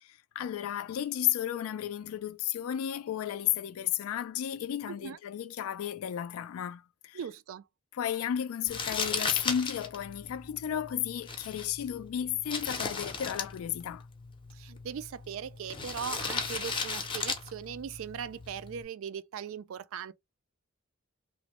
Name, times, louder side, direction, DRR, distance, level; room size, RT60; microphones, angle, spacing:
voice 1, 0.0-7.2 7.9-14.1, left 10 dB, 75° left, 0.3 m, -33 dB
voice 2, 4.9-5.2 7.1-7.6 14.5-20.1, right 7 dB, 65° right, 0.3 m, -39 dB
Crumpling crinkling, 8.7-18.8, left 4 dB, 25° left, 0.6 m, -37 dB
3.0 x 2.0 x 2.9 m
head